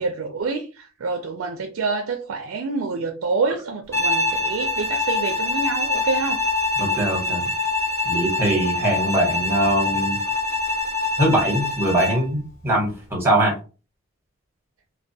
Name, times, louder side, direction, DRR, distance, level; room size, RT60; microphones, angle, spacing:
voice 1, 0.0-6.4, right 4 dB, 75° right, 0.4 m, -27 dB
Bowed string instrument, 3.9-12.3, left 2 dB, 15° left, 0.9 m, -24 dB
voice 2, 6.8-7.5 8.0-10.2 11.2-13.5, right 1 dB, 10° right, 0.9 m, -22 dB
2.2 x 2.2 x 2.6 m
head